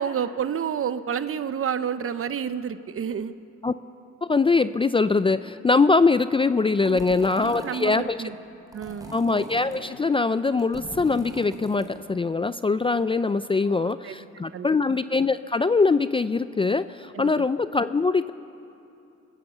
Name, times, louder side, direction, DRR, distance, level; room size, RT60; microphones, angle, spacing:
voice 1, 0.0-3.3 6.9-7.0 7.4-8.3 8.7-9.1 13.7-14.7 17.1-17.3, right 8 dB, 45° right, 13 dB, 0.8 m, -30 dB
voice 2, 4.2-8.2 9.1-18.3, left 4 dB, 20° left, 13 dB, 0.4 m, -22 dB
sound 1, 6.9-8.0 8.7-9.9 10.5-12.0, right 1 dB, 10° right, 3.2 m, -40 dB
25.0 x 15.0 x 6.9 m, 2.7 s
cardioid pair, 90°, 30 cm